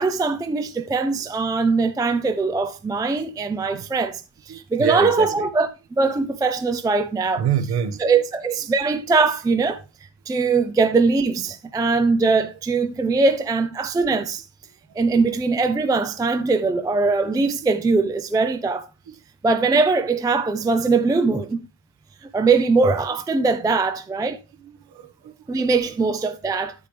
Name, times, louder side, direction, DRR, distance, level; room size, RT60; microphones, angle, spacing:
voice 1, 0.0-5.7 6.0-7.4 8.0-9.8 10.3-14.4 15.0-18.9 19.4-21.6 22.2-24.4 25.5-26.7, right 4 dB, 10° right, 0.5 m, -21 dB
voice 2, 4.5-5.5 7.4-8.2 15.1-15.2 19.1-19.2 24.6-25.7, right 9 dB, 55° right, 1.5 m, -27 dB
9.4 x 8.4 x 3.3 m
cardioid pair, 130°, 48 cm